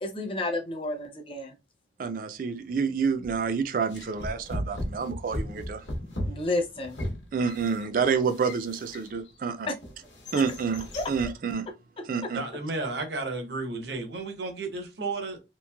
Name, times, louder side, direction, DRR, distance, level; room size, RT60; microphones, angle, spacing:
voice 1, 0.0-1.5 6.2-7.0 11.0-11.1 12.0-12.1, left 2 dB, 30° left, 0.5 m, -31 dB
voice 2, 2.0-5.8 7.3-9.7 10.3-11.7 12.0-12.4, right 5 dB, 50° right, 0.3 m, -28 dB
sound 1, 3.2-3.5 3.9-9.3 9.8-11.4, equal, 90° left, 0.9 m, -36 dB
voice 3, 12.3-15.4, right 3 dB, 70° right, 0.8 m, -33 dB
3.0 x 2.5 x 2.2 m
head